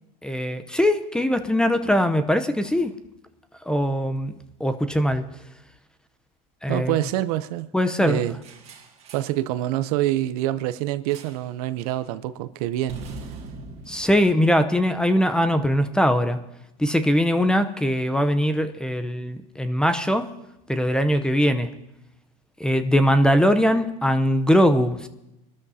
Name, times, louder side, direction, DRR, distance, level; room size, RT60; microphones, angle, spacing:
voice 1, 0.2-2.9 3.7-4.3 4.6-5.2 6.6-7.0 7.7-8.2 13.9-16.4 16.8-20.3 20.7-21.7 22.6-25.1, equal, 5° left, 0.7 m, -21 dB
voice 2, 6.7-7.7 8.0-8.4 9.1-13.0, right 14 dB, 65° right, 0.7 m, -26 dB
sound 1, 8.4-9.4 11.1-11.5 11.8-12.1 12.9-15.2, right 3 dB, 30° right, 2.0 m, -42 dB
24.0 x 13.0 x 2.8 m
supercardioid pair, 125°, 20 cm